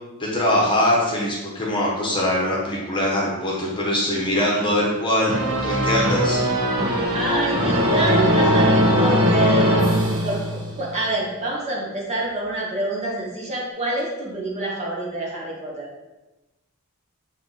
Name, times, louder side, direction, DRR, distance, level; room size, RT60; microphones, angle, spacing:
voice 1, 0.2-5.4 5.6-6.4, left 1 dB, 20° left, -4 dB, 1.2 m, -22 dB
sound 1, 5.3-10.9, equal, 70° right, 1.3 m, -20 dB
voice 2, 7.1-9.9 10.2-15.9, right 1 dB, 30° right, -4 dB, 1.7 m, -27 dB
7.9 x 3.4 x 4.1 m, 1.1 s
head